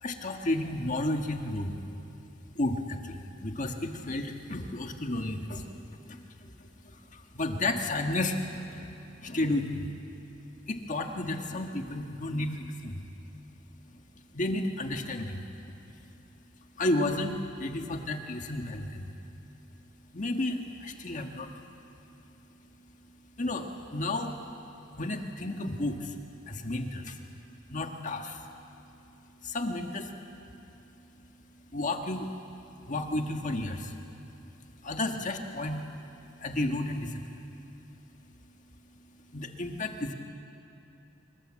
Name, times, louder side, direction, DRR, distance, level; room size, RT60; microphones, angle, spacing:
voice 1, 0.0-1.7 2.5-8.9 9.2-9.9 10.7-13.0 14.3-15.4 16.8-19.1 20.1-21.5 23.4-24.3 25.0-26.2 26.5-27.2 27.7-28.5 29.4-30.1 31.7-32.3 32.9-34.0 34.8-35.8 36.4-37.4 39.3-40.1, left 2 dB, 40° left, 4 dB, 1.7 m, -32 dB
25.5 x 22.5 x 7.6 m, 2.9 s
head